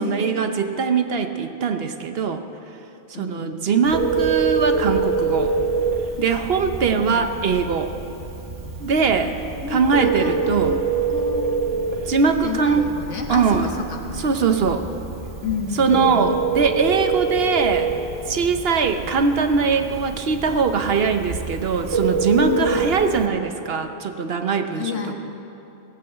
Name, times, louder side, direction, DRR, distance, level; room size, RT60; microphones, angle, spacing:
voice 1, 0.0-2.4 3.2-5.5 6.2-8.0 8.8-9.4 9.7-10.7 12.0-12.9 13.3-13.7 14.2-14.9 15.8-17.9 18.3-25.0, right 5 dB, 60° right, 7 dB, 1.0 m, -21 dB
voice 2, 3.1-3.8 7.0-7.3 9.6-10.8 11.1-11.5 12.2-14.2 15.4-16.3 22.4-22.9 24.8-25.1, left 5 dB, 80° left, 2 dB, 1.7 m, -29 dB
Telephone, 3.8-23.3, right 4 dB, 75° right, 1.9 m, -26 dB
18.5 x 7.9 x 7.8 m, 2.9 s
omnidirectional pair, 1.2 m